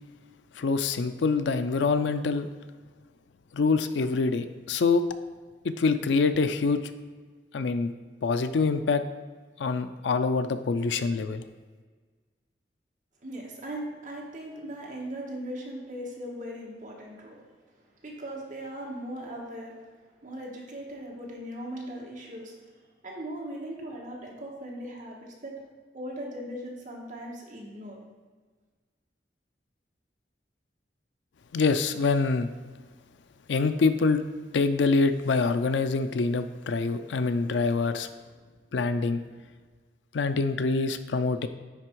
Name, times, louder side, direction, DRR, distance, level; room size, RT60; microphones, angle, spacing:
voice 1, 0.6-2.5 3.5-5.0 5.6-6.8 7.5-7.9 8.2-9.0 9.6-11.4 31.5-32.5 33.5-34.2 34.5-38.1 38.7-39.2 40.1-41.5, left 4 dB, 90° left, 11 dB, 0.4 m, -25 dB
voice 2, 13.2-17.4 18.0-19.8 20.2-22.5 23.0-25.5 25.9-28.0, right 1 dB, 50° right, -2 dB, 1.5 m, -39 dB
9.4 x 3.4 x 4.6 m, 1.5 s
head